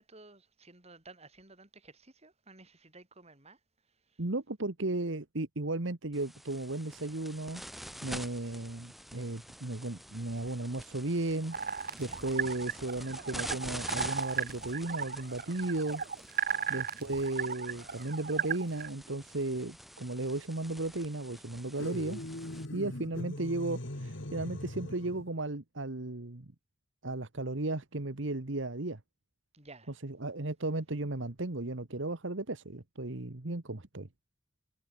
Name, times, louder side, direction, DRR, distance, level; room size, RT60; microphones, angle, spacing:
voice 1, 0.0-3.6 4.1-4.2 12.0-12.2 16.6-16.9 29.5-29.9, right 3 dB, 35° right, 6.2 m, -55 dB
voice 2, 4.2-7.6 8.0-11.6 12.0-16.0 16.7-22.2 22.7-26.4 27.0-29.0 30.0-34.1, right 2 dB, 65° right, 1.5 m, -35 dB
sound 1, 6.1-22.6, equal, ahead, 5.6 m, -47 dB
sound 2, 11.5-18.9, right 7 dB, 50° right, 3.7 m, -36 dB
sound 3, 21.8-25.3, left 1 dB, 65° left, 2.7 m, -40 dB
head